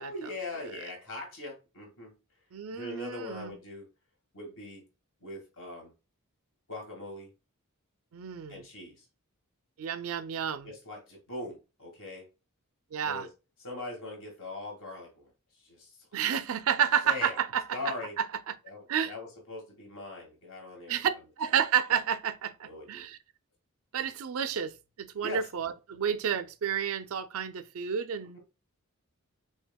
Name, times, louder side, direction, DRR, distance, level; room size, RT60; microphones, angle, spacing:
voice 1, 0.0-2.1 2.7-3.9 4.3-4.9 5.2-5.9 6.7-7.3 8.5-9.1 10.6-12.3 13.0-13.3 13.6-15.3 15.6-16.0 17.0-17.4 17.7-18.2 18.6-21.0 22.6-23.0 25.2-25.5, left 2 dB, 60° left, 2.0 m, -41 dB
voice 2, 2.5-3.6 8.1-8.6 9.8-10.7 12.9-13.3 16.1-17.8 18.2-18.6 18.9-19.1 20.9-21.1 21.4-23.2 23.9-28.4, right 8 dB, 70° right, 0.4 m, -30 dB
6.2 x 2.8 x 2.2 m
head